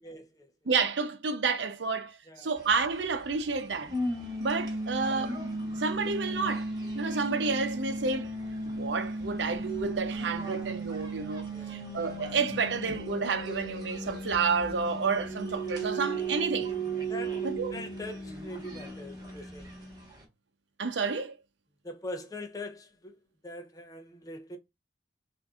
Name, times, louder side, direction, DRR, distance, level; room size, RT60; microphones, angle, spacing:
voice 1, 0.0-0.5 2.3-2.5 11.5-11.8 17.1-19.8 21.8-23.2 23.4-24.6, left 1 dB, 20° left, 0.6 m, -42 dB
voice 2, 0.7-3.9 4.4-5.4 5.8-8.3 8.6-16.7 17.4-17.7 20.8-21.3, right 4 dB, 85° right, 0.7 m, -30 dB
sound 1, 2.6-20.2, right 2 dB, 25° right, 1.4 m, -36 dB
6.2 x 2.6 x 2.4 m
head